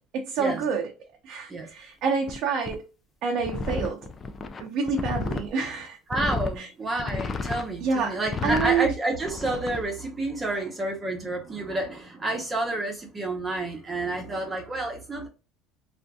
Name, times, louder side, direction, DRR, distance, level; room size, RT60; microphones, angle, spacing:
voice 1, 0.1-0.9 1.2-2.8 3.2-4.0 4.6-6.0 6.6-6.7 7.8-8.2 8.4-8.9 10.5-10.6, right 5 dB, 55° right, 0.5 m, -27 dB
sound 1, 2.3-2.4 2.7-2.8 3.4-5.5 6.1-6.6 7.0-7.7 8.2-8.7 9.2-9.8, left 4 dB, 25° left, 0.3 m, -31 dB
voice 2, 6.1-15.3, right 2 dB, 20° right, 0.7 m, -29 dB
2.6 x 2.4 x 2.2 m
cardioid pair, 140°, 0 cm